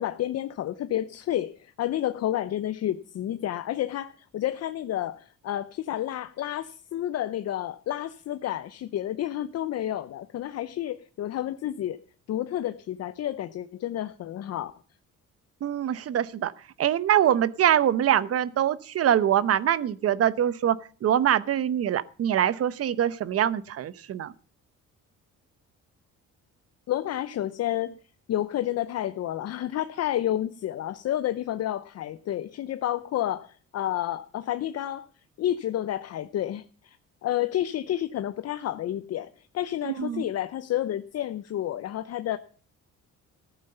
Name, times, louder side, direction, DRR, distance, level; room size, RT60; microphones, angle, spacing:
voice 1, 0.0-12.0 12.3-14.7 26.9-27.9 28.3-35.1 35.4-37.0 37.2-42.4, left 12 dB, 55° left, 0.7 m, -30 dB
voice 2, 15.6-16.5 16.8-24.3 39.8-40.3, right 10 dB, 55° right, 0.9 m, -24 dB
14.5 x 9.1 x 6.8 m
cardioid pair, 130°, 30 cm